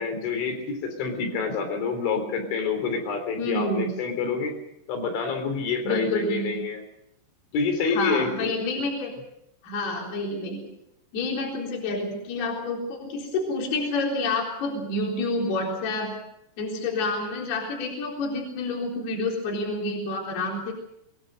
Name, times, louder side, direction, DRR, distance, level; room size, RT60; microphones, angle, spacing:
voice 1, 0.0-4.5 4.9-6.8 7.5-8.6, left 5 dB, 80° left, 5 dB, 6.1 m, -27 dB
voice 2, 3.4-3.9 5.8-6.7 7.9-9.1 9.6-10.6 11.1-16.1 16.6-20.7, left 2 dB, 60° left, -1 dB, 5.8 m, -28 dB
23.0 x 21.5 x 6.6 m, 0.81 s
omnidirectional pair, 5.4 m